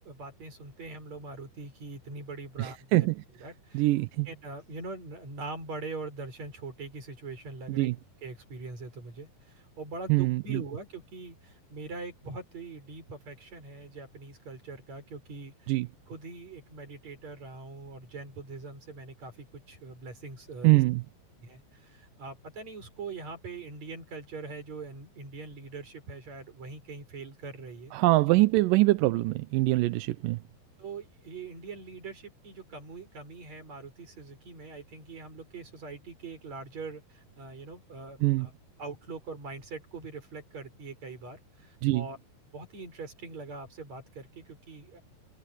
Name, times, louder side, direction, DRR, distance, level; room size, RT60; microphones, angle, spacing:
voice 1, 0.0-3.1 3.3-3.9 4.3-7.9 8.2-15.8 16.1-20.8 21.4-27.9 30.8-38.5 38.8-42.2 42.5-45.0, right 3 dB, 45° right, 7.5 m, -42 dB
voice 2, 2.6-3.2 3.7-4.3 7.8-7.9 10.1-10.6 15.7-15.9 20.6-21.0 27.9-30.4 38.2-38.5 41.8-42.0, right 19 dB, 75° right, 2.1 m, -24 dB
omnidirectional pair, 4.4 m